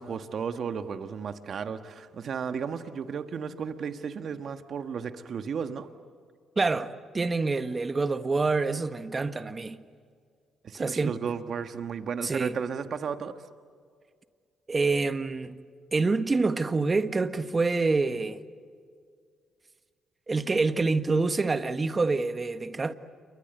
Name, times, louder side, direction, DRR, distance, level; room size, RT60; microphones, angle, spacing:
voice 1, 0.0-5.9 10.6-13.3, right 6 dB, 60° right, 1.5 m, -34 dB
voice 2, 6.6-9.8 10.7-11.4 12.2-12.6 14.7-15.6 15.9-18.4 20.3-22.9, right 3 dB, 30° right, 1.5 m, -27 dB
29.0 x 23.5 x 8.2 m
supercardioid pair, 60°, 0 cm